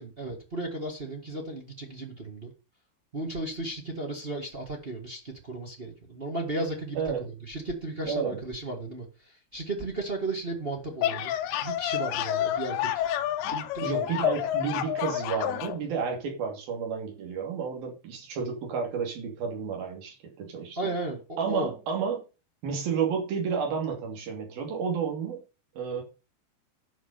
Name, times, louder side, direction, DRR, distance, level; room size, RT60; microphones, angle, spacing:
voice 1, 0.0-2.5 3.1-7.0 7.5-11.3 11.6-13.0 13.5-14.0 20.8-21.7, right 2 dB, 40° right, 0.8 m, -35 dB
voice 2, 6.9-7.3 8.0-8.4 13.4-20.9 21.4-22.2 22.6-25.4 25.8-26.0, right 6 dB, 65° right, 4.4 m, -31 dB
sound 1, 10.8-15.8, left 11 dB, 80° left, 2.9 m, -29 dB
11.0 x 6.0 x 6.8 m
omnidirectional pair, 4.5 m